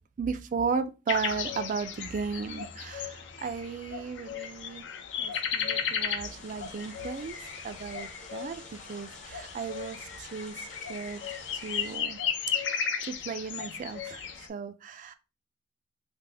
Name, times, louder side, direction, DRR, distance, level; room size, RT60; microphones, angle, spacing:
voice 1, 0.2-4.8 5.2-8.6 8.9-11.2 11.6-12.2 12.5-15.1, right 5 dB, 45° right, 0.3 m, -35 dB
sound 1, 1.1-14.5, left 7 dB, 70° left, 0.4 m, -35 dB
sound 2, 6.2-12.0, left 3 dB, 40° left, 0.8 m, -49 dB
3.4 x 2.0 x 3.2 m
head